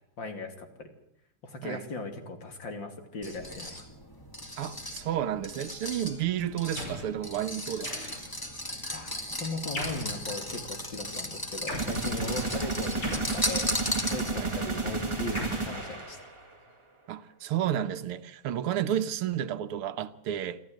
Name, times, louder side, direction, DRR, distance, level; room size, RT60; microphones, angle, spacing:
voice 1, 0.2-0.9 1.4-3.9 8.9-13.7 14.1-16.2, left 2 dB, 60° left, 3.4 m, -38 dB
sound 1, 3.2-14.6, left 1 dB, 10° left, 2.3 m, -36 dB
voice 2, 4.6-7.9 12.4-12.5 14.4-14.5 17.1-20.6, right 10 dB, 85° right, 1.9 m, -31 dB
sound 2, 6.7-7.1 7.8-8.4 9.7-10.2 11.7-12.0 13.0-13.9 15.3-16.4, left 1 dB, 85° left, 6.6 m, -38 dB
sound 3, 11.8-16.5, right 3 dB, 15° right, 1.6 m, -32 dB
26.0 x 14.5 x 9.2 m
omnidirectional pair, 2.4 m